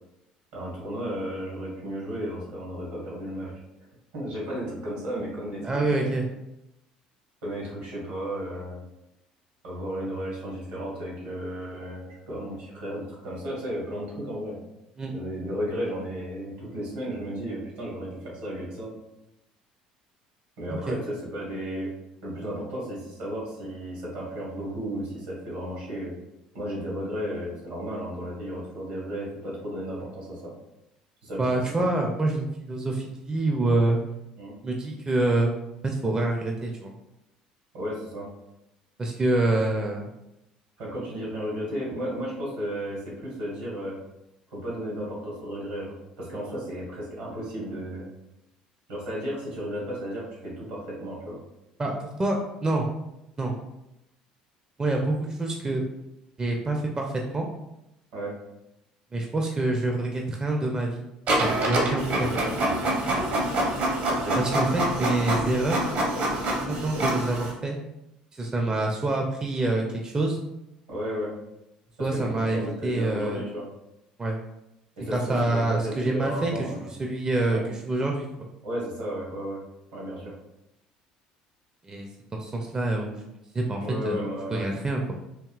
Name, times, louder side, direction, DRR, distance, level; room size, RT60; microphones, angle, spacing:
voice 1, 0.5-3.5 4.1-6.1 7.4-8.8 9.6-14.6 15.1-18.9 20.6-21.9 22.2-26.1 26.5-30.5 31.2-31.4 31.8-31.9 34.4-34.5 37.7-38.3 40.8-44.0 44.5-48.1 48.9-51.4 58.1-58.3 62.3-62.5 64.1-64.4 70.9-71.3 72.0-73.7 75.0-76.9 77.5-77.6 78.6-79.6 79.9-80.3 83.8-84.7, equal, 70° right, -4 dB, 1.4 m, -34 dB
voice 2, 5.6-6.2 15.0-15.1 20.9-21.0 31.4-34.0 34.6-35.5 35.8-36.9 39.0-40.1 51.8-52.9 53.4-53.5 54.8-55.9 56.4-57.5 59.1-61.0 61.4-62.3 64.3-65.8 66.7-67.8 68.3-70.4 72.0-73.4 74.2-74.4 75.1-78.5 81.8-84.2 84.5-85.2, right 2 dB, 20° right, 1 dB, 0.4 m, -26 dB
Printer, 61.3-67.5, right 1 dB, 50° right, 0.8 m, -26 dB
3.5 x 2.7 x 2.3 m, 0.89 s
figure-of-eight pair, 60°, 3 cm